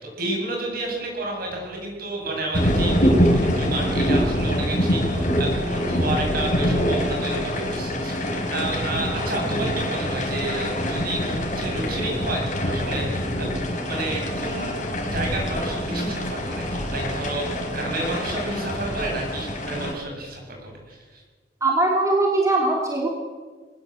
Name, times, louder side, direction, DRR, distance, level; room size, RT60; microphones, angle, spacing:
voice 1, 0.0-14.8 15.1-21.2, right 2 dB, 55° right, 0 dB, 7.6 m, -31 dB
sound 1, 2.5-19.9, equal, 45° left, 4.4 m, -25 dB
voice 2, 21.6-23.1, right 2 dB, 15° right, -1 dB, 3.1 m, -21 dB
21.5 x 19.5 x 8.1 m, 1.4 s
head